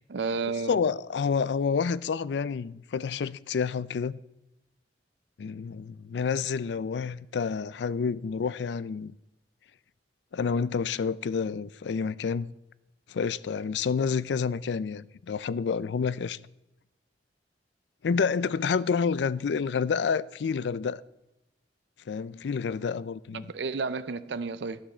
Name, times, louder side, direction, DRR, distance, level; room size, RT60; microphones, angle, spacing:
voice 1, 0.1-0.8 23.3-24.8, right 4 dB, 75° right, 0.5 m, -31 dB
voice 2, 0.7-4.2 5.4-9.1 10.3-12.5 13.1-16.4 18.0-21.0 22.1-23.5, left 5 dB, 70° left, 0.4 m, -29 dB
12.0 x 11.5 x 4.3 m
head